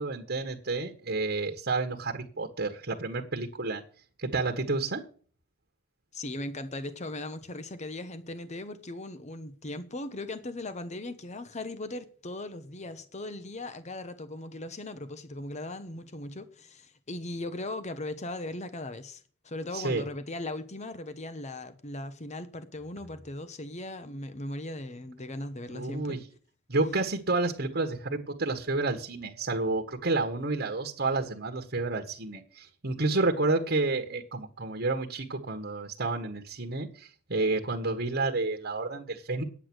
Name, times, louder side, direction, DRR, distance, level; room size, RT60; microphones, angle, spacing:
voice 1, 0.0-3.8 4.2-5.0 19.7-20.0 25.7-26.2 26.7-39.4, right 3 dB, 50° right, 1.5 m, -30 dB
voice 2, 6.1-26.2, left 2 dB, 30° left, 1.0 m, -38 dB
9.7 x 8.5 x 6.2 m
head